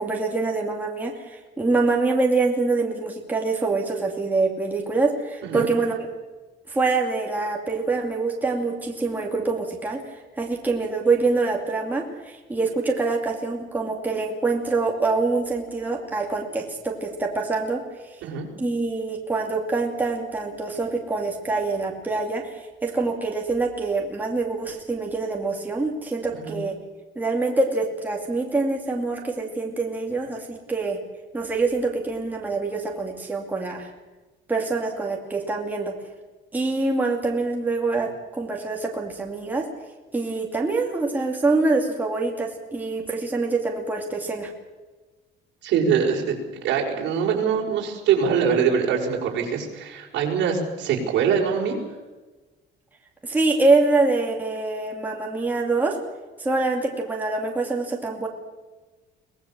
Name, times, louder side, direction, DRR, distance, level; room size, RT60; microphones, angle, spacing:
voice 1, 0.0-6.1 6.7-10.0 10.4-17.8 18.1-18.2 18.6-22.5 22.8-26.7 27.2-31.0 31.3-33.9 34.5-35.9 36.5-39.7 40.1-44.5 53.2-55.9 56.4-58.3, right 3 dB, 10° right, -1 dB, 2.6 m, -25 dB
voice 2, 45.6-46.4 46.6-51.8, right 7 dB, 70° right, -2 dB, 5.7 m, -23 dB
23.5 x 18.0 x 7.4 m, 1.2 s
cardioid pair, 175°, 19 cm